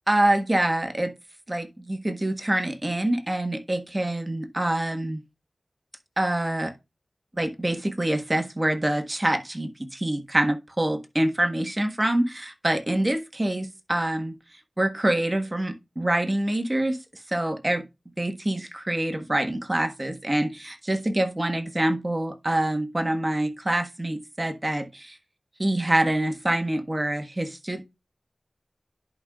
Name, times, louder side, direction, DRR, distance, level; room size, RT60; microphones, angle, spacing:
voice 1, 0.1-1.1 1.5-5.2 6.2-6.7 7.4-14.3 14.8-17.0 17.3-17.8 18.2-25.1 25.6-27.8, right 1 dB, 30° right, 1.5 m, -25 dB
10.5 x 5.4 x 2.4 m
wide cardioid pair, 50°, 0 cm